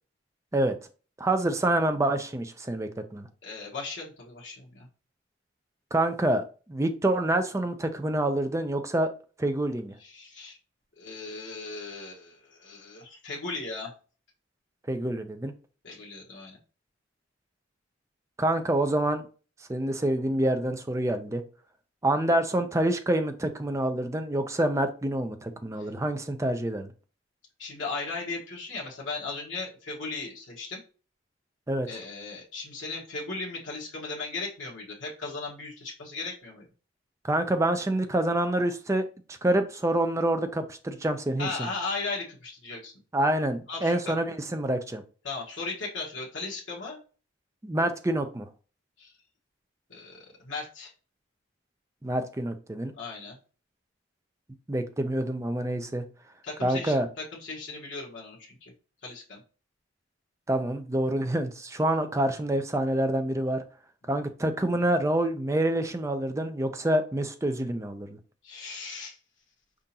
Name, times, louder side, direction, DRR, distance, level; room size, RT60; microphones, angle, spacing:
voice 1, 1.2-3.3 5.9-6.4 6.7-9.1 9.4-9.9 14.9-15.5 18.4-19.3 19.7-21.4 22.0-26.9 31.7-32.0 37.2-39.0 39.4-41.7 43.1-45.0 47.6-48.5 52.0-52.9 54.7-56.1 56.6-57.1 60.5-63.6 64.1-68.2, right 1 dB, 15° right, 8 dB, 0.4 m, -27 dB
voice 2, 3.4-4.9 10.0-10.5 11.0-13.9 15.8-16.6 25.8-25.9 27.6-30.8 31.9-36.6 41.4-42.9 43.7-44.1 45.2-47.0 49.0-49.1 49.9-50.9 53.0-53.4 56.4-58.7 59.0-59.4 68.4-69.2, left 3 dB, 75° left, -3 dB, 1.3 m, -37 dB
4.9 x 3.7 x 2.8 m, 0.36 s
head